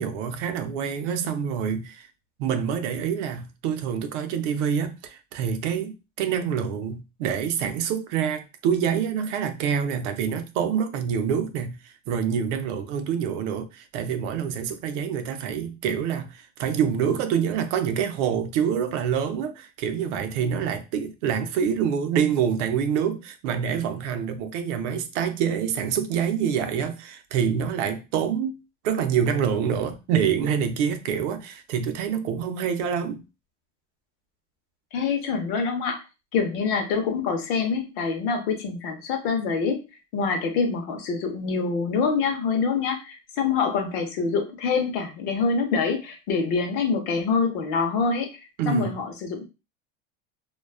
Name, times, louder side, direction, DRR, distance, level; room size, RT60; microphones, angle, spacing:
voice 1, 0.0-2.1 2.4-28.6 28.8-33.2 48.6-49.0, right 7 dB, 75° right, 0.5 m, -26 dB
voice 2, 34.9-36.0 36.3-39.8 40.1-48.3 48.7-49.5, left 5 dB, 55° left, 0.7 m, -25 dB
2.4 x 2.2 x 2.3 m
cardioid pair, 170°, 37 cm